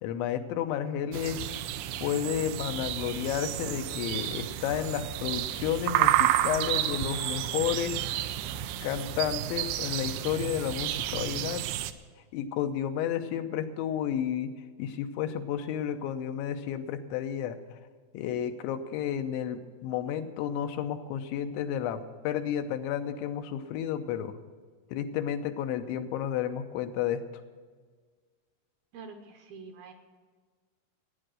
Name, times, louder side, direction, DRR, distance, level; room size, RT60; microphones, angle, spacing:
voice 1, 0.0-1.5 2.0-8.0 8.8-11.6 12.3-14.5 14.8-17.6 18.1-24.3 24.9-27.2, left 9 dB, 85° left, 7 dB, 3.3 m, -31 dB
sound 1, 1.1-11.9, right 12 dB, 85° right, 3.0 m, -31 dB
voice 2, 28.9-29.9, right 4 dB, 70° right, 5 dB, 2.5 m, -46 dB
15.5 x 10.0 x 6.4 m, 1.5 s
omnidirectional pair, 5.2 m